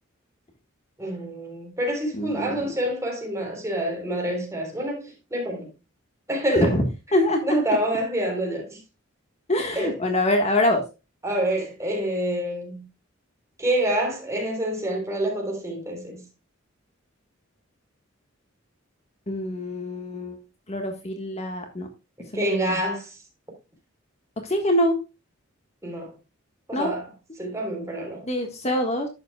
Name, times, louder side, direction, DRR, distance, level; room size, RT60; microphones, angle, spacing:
voice 1, 1.0-5.7 6.3-6.7 7.4-8.8 9.8-10.0 11.2-12.9 13.6-16.2 22.2-23.2 25.8-26.1 26.7-27.1 27.4-28.3, right 1 dB, 15° right, 3.6 m, -27 dB
voice 2, 2.2-2.7 6.5-7.6 9.5-10.8 19.3-20.4 20.7-21.9 22.3-22.8 24.5-25.0 26.7-26.9 28.2-29.1, left 1 dB, 35° left, 1.5 m, -24 dB
11.0 x 8.2 x 2.3 m
head